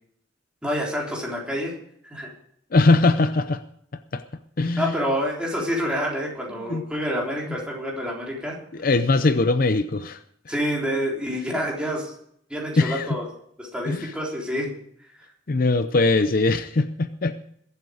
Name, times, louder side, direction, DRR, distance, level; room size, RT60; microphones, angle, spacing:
voice 1, 0.6-1.7 2.0-2.3 4.8-8.6 10.5-12.1 12.5-13.2 13.6-14.7 15.2-15.3, equal, 5° right, -3 dB, 3.7 m, -27 dB
voice 2, 2.7-3.6 4.1-4.2 4.6-5.0 6.5-6.9 8.7-10.2 12.8-13.1 13.9-14.1 15.5-17.3, left 3 dB, 50° left, 11 dB, 0.6 m, -21 dB
21.5 x 8.1 x 4.9 m, 0.69 s
head